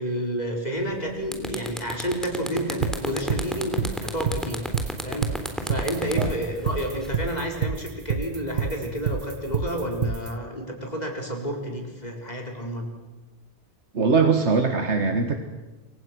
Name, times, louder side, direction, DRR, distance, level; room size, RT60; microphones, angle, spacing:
voice 1, 0.0-4.6 5.0-12.9, equal, 35° left, 1 dB, 4.8 m, -30 dB
sound 1, 0.8-0.9 1.2-7.3, equal, ahead, 3.0 m, -32 dB
sound 2, 2.8-10.3, right 6 dB, 55° right, 1.2 m, -27 dB
voice 2, 13.9-15.4, right 4 dB, 80° right, 6 dB, 1.9 m, -21 dB
27.5 x 24.5 x 6.2 m, 1.1 s
omnidirectional pair, 1.2 m